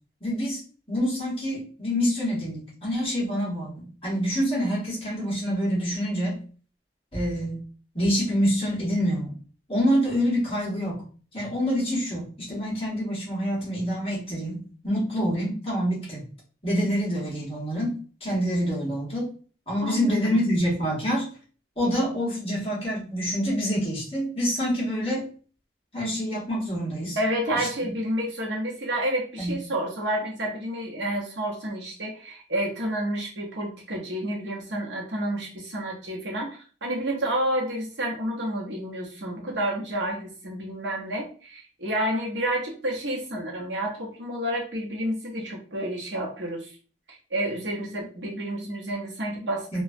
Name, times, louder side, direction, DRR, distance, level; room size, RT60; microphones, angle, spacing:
voice 1, 0.2-0.6 0.9-6.4 7.1-7.6 7.9-9.3 9.7-11.0 11.3-16.2 16.6-17.9 18.2-19.3 19.7-21.3 21.8-25.2 25.9-27.2 27.5-27.7 29.4-29.6 49.7-49.8, equal, 35° left, -5 dB, 1.3 m, -26 dB
voice 2, 19.8-20.4 27.2-46.8 47.3-49.7, right 1 dB, 75° right, -1 dB, 0.9 m, -30 dB
3.0 x 2.3 x 2.6 m, 0.40 s
head